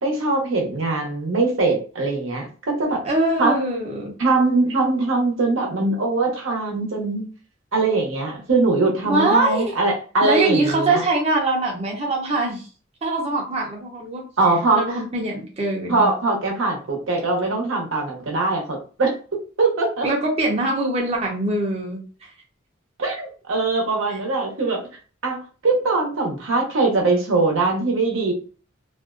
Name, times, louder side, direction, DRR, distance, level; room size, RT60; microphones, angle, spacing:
voice 1, 0.0-3.0 3.4-3.6 4.2-7.2 7.7-11.0 14.4-15.0 15.9-19.1 19.6-20.1 23.0-24.8 25.2-25.4 25.6-28.3, right 3 dB, 90° right, 1 dB, 0.8 m, -21 dB
voice 2, 3.0-4.1 9.1-9.6 10.2-12.7 13.0-14.3 14.7-16.1 20.0-22.0, right 2 dB, 30° right, -1 dB, 0.6 m, -23 dB
2.5 x 2.2 x 2.4 m, 0.37 s
head